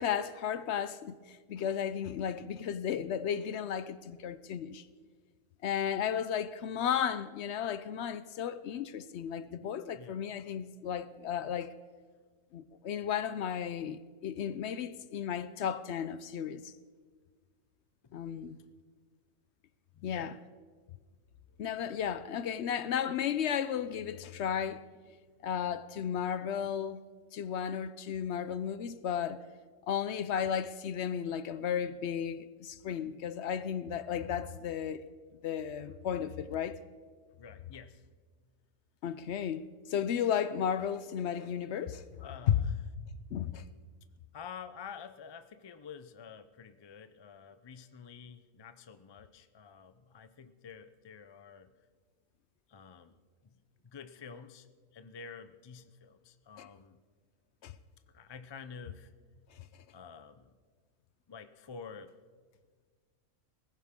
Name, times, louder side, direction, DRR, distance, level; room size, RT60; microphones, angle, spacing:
voice 1, 0.0-4.9 5.6-11.7 12.5-16.7 18.1-18.6 20.0-20.3 21.6-24.8 25.4-27.0 27.3-29.4 29.9-35.0 35.4-36.8 39.0-42.0 42.5-42.6 43.3-43.6 56.6-56.7 57.6-57.7 59.5-59.6, left 8 dB, 65° left, 0.8 m, -34 dB
voice 2, 19.9-20.4 37.4-38.0 42.2-42.7 44.3-51.7 52.7-53.1 53.4-54.7 54.9-57.0 58.1-59.1 59.9-60.5 61.3-62.2, left 6 dB, 45° left, 0.3 m, -49 dB
19.0 x 15.5 x 3.6 m
omnidirectional pair, 1.3 m